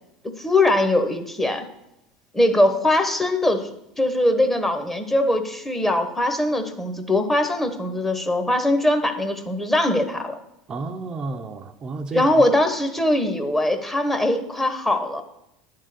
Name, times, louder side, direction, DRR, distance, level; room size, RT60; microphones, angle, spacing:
voice 1, 0.4-1.6 2.3-10.4 12.1-15.2, left 1 dB, 10° left, 6 dB, 1.1 m, -21 dB
voice 2, 10.7-12.4, right 3 dB, 30° right, 4 dB, 0.6 m, -32 dB
10.0 x 3.7 x 6.7 m, 0.84 s
hypercardioid pair, 90°, 3 cm